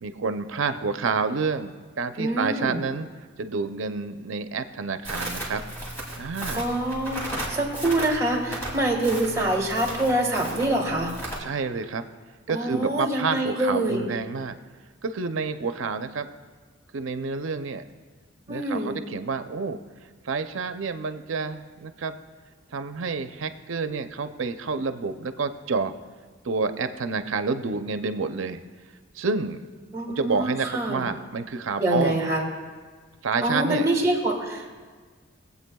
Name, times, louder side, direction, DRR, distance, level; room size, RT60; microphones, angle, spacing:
voice 1, 0.0-3.1 3.4-5.6 6.2-6.6 11.4-12.1 12.5-14.6 15.0-16.3 16.9-17.8 18.5-19.8 20.2-22.2 22.7-25.9 26.4-28.6 29.2-29.6 30.1-32.2 33.2-33.9, right 4 dB, 75° right, 9 dB, 0.5 m, -29 dB
voice 2, 2.2-2.8 6.5-11.2 12.5-14.0 18.5-19.0 29.9-31.0 31.8-32.5 33.4-34.8, right 1 dB, 15° right, -1 dB, 1.6 m, -25 dB
Crackle, 5.0-11.4, right 1 dB, 10° left, 2.0 m, -35 dB
21.5 x 8.1 x 2.3 m, 1.5 s
head